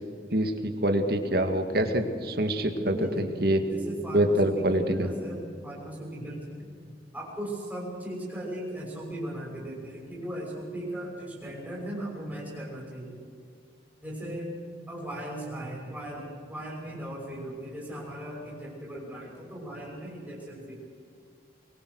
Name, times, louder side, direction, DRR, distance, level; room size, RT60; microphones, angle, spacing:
voice 1, 0.3-3.6 4.1-5.1, right 1 dB, 55° right, 6 dB, 2.0 m, -25 dB
voice 2, 2.7-3.3 3.7-6.7 7.1-13.2 14.0-20.8, right 1 dB, 5° right, -5 dB, 5.8 m, -37 dB
23.0 x 22.5 x 6.4 m, 2.3 s
head